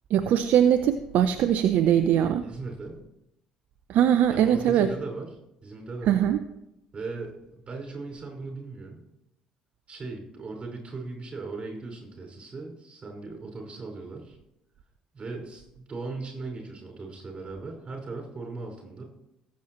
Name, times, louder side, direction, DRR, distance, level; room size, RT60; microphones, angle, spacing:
voice 1, 0.1-2.4 3.9-4.9 6.1-6.4, right 10 dB, 60° right, 11 dB, 0.5 m, -21 dB
voice 2, 2.4-3.0 4.3-5.3 5.6-6.2 6.9-9.0 9.9-14.4 15.1-19.0, right 3 dB, 35° right, 0 dB, 5.3 m, -38 dB
18.5 x 8.7 x 3.0 m, 0.84 s
hypercardioid pair, 55°, 3 cm